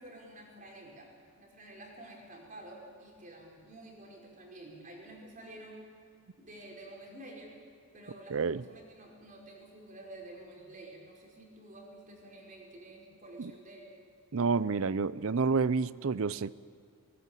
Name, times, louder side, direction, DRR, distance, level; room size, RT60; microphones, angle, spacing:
voice 1, 0.0-5.9 6.4-7.6 7.9-13.9, right 1 dB, 35° right, -1 dB, 5.2 m, -50 dB
voice 2, 8.3-8.6 13.4-13.5 14.3-16.5, right 4 dB, 65° right, 18 dB, 0.5 m, -29 dB
19.5 x 19.5 x 9.2 m, 2.2 s
head